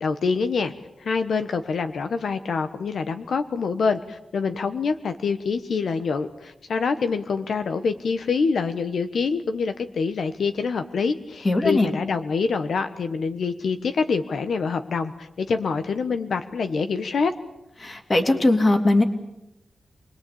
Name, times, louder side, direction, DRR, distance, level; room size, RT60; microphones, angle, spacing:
voice 1, 0.0-0.7 1.0-17.3, left 5 dB, 80° left, 8 dB, 1.3 m, -25 dB
voice 2, 11.4-11.9 17.8-19.0, left 2 dB, 30° left, 6 dB, 2.8 m, -19 dB
29.0 x 21.0 x 8.7 m, 0.89 s
wide cardioid pair, 145°, 0 cm